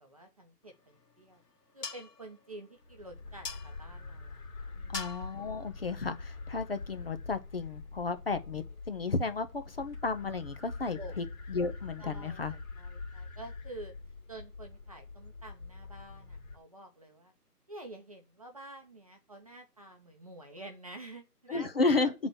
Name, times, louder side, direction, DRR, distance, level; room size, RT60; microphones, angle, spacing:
voice 1, 0.0-1.4 1.7-4.4 4.7-5.1 11.0-11.2 12.0-13.9 14.3-17.3 17.7-22.1, right 1 dB, 25° right, 0.8 m, -49 dB
sound 1, 0.6-7.1, left 4 dB, 75° left, 2.2 m, -47 dB
sound 2, 2.8-16.6, left 3 dB, 55° left, 2.2 m, -45 dB
voice 2, 4.9-12.5 21.5-22.1, left 3 dB, 40° left, 0.9 m, -33 dB
7.4 x 4.1 x 6.3 m
figure-of-eight pair, 160°, 47 cm